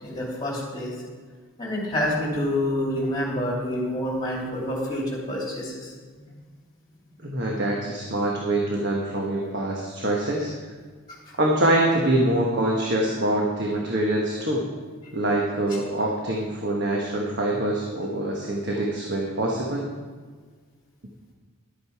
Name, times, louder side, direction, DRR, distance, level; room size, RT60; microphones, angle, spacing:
voice 1, 0.0-0.9 1.6-5.9 11.1-11.2, left 1 dB, 20° left, -3 dB, 2.9 m, -27 dB
voice 2, 7.2-10.5 11.4-14.7 15.1-19.9, right 1 dB, 50° right, -1 dB, 1.3 m, -24 dB
12.0 x 8.7 x 4.8 m, 1.5 s
head